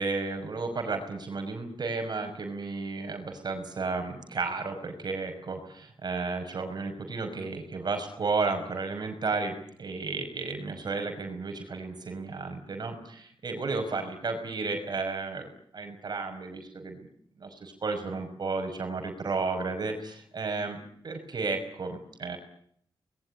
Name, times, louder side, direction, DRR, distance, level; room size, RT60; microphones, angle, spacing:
voice 1, 0.0-17.1 17.4-22.4, right 3 dB, 55° right, 5 dB, 5.5 m, -33 dB
25.5 x 21.5 x 9.9 m, 0.68 s
wide cardioid pair, 110°, 8 cm